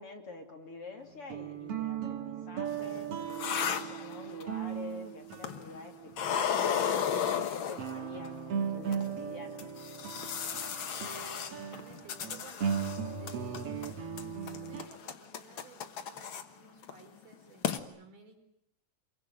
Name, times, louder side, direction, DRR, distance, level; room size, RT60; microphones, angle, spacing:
voice 1, 0.0-6.5 7.0-9.7, left 3 dB, 40° left, 3 dB, 3.3 m, -47 dB
sound 1, 1.0-6.3 6.9-7.0 7.8-14.8, right 7 dB, 50° right, 2.0 m, -37 dB
sound 2, 2.7-4.6 5.3-5.8 6.1-8.3 8.9-9.0 9.6-13.0 13.3-13.9 14.2-16.4 16.8-17.0 17.3-17.4 17.6-17.8, left 8 dB, 70° left, 1.2 m, -34 dB
voice 2, 11.3-12.8 13.1-13.8 14.4-18.4, right 4 dB, 75° right, 5 dB, 6.4 m, -56 dB
28.0 x 22.5 x 9.1 m, 0.77 s
omnidirectional pair, 4.4 m